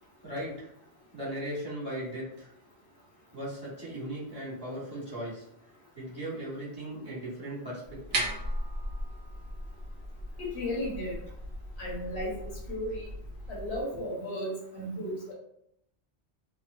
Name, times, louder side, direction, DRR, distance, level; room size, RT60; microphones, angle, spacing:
voice 1, 0.2-0.7 1.1-2.5 3.3-5.4 5.9-8.3 13.9-14.0, right 1 dB, 20° right, -9 dB, 1.3 m, -38 dB
sound 1, 7.8-13.8, right 1 dB, 55° right, 0.8 m, -37 dB
voice 2, 10.4-11.2 11.8-13.1 13.5-15.3, left 1 dB, 70° left, -3 dB, 1.1 m, -35 dB
2.9 x 2.1 x 2.5 m, 0.75 s
omnidirectional pair, 1.1 m